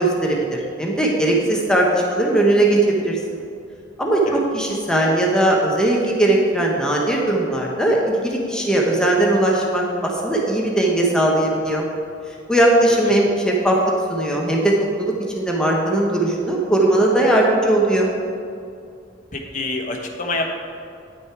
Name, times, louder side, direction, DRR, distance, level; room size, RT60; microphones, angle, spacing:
voice 1, 0.0-3.2 4.0-11.8 12.5-13.8 14.1-14.7 15.0-18.1, right 1 dB, 5° left, -2 dB, 1.0 m, -19 dB
voice 2, 19.3-20.5, left 2 dB, 45° left, 2 dB, 1.1 m, -27 dB
10.0 x 6.2 x 4.7 m, 2.4 s
head